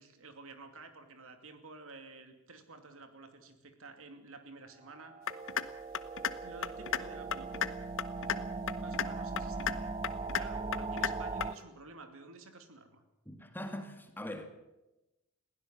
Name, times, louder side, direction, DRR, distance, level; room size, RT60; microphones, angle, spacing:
voice 1, 0.0-5.1 6.4-7.7 8.8-13.0, right 3 dB, 65° right, 2.7 m, -51 dB
sound 1, 4.9-11.5, right 3 dB, 25° right, 0.7 m, -39 dB
sound 2, 5.3-5.7 5.9-6.3 6.6-7.0 7.3-7.7 8.0-8.4 8.7-9.1 9.4-9.7 10.0-10.4 10.7-11.1 11.4-11.5, left 8 dB, 60° left, 1.1 m, -32 dB
voice 2, 13.3-14.5, left 1 dB, 10° left, 2.0 m, -42 dB
21.5 x 16.0 x 7.6 m
head